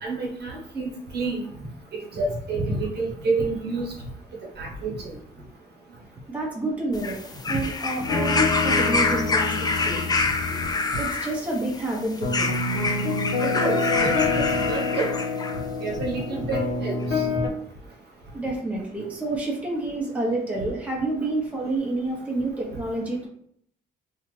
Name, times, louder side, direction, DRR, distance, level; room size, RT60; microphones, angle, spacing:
voice 1, 0.0-1.5 2.1-3.9 4.6-5.0 13.4-15.1 15.8-17.4, right 3 dB, 55° right, -2 dB, 1.1 m, -28 dB
voice 2, 6.3-10.0 10.5-10.6 11.0-12.5 16.3-16.4 18.3-23.3, right 2 dB, 5° right, -3 dB, 0.8 m, -29 dB
sound 1, 6.9-15.6 16.5-16.6, left 3 dB, 20° left, 0.4 m, -27 dB
sound 2, 8.1-11.1 12.2-17.5, left 3 dB, 80° left, 0.9 m, -27 dB
2.7 x 2.4 x 3.1 m, 0.66 s
cardioid pair, 90°, 20 cm